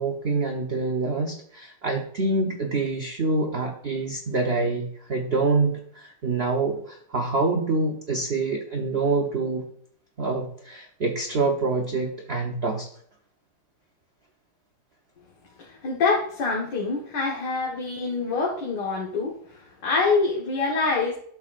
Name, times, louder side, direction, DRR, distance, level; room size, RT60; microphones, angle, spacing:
voice 1, 0.0-9.7 10.2-12.9, right 3 dB, 45° right, 2 dB, 0.8 m, -26 dB
voice 2, 15.6-21.2, left 4 dB, 65° left, -2 dB, 2.0 m, -25 dB
12.0 x 7.1 x 2.5 m, 0.62 s
omnidirectional pair, 2.1 m